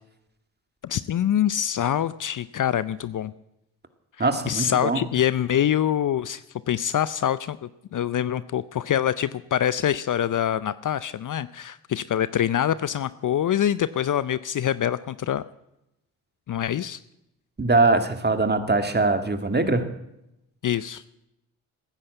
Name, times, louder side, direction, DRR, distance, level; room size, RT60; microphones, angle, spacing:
voice 1, 0.8-3.3 4.2-15.4 16.5-17.0 20.6-21.0, left 10 dB, 45° left, 16 dB, 0.6 m, -25 dB
voice 2, 4.2-5.0 17.6-19.8, right 3 dB, 25° right, 8 dB, 2.0 m, -22 dB
15.0 x 9.9 x 7.9 m, 0.85 s
hypercardioid pair, 45°, 43 cm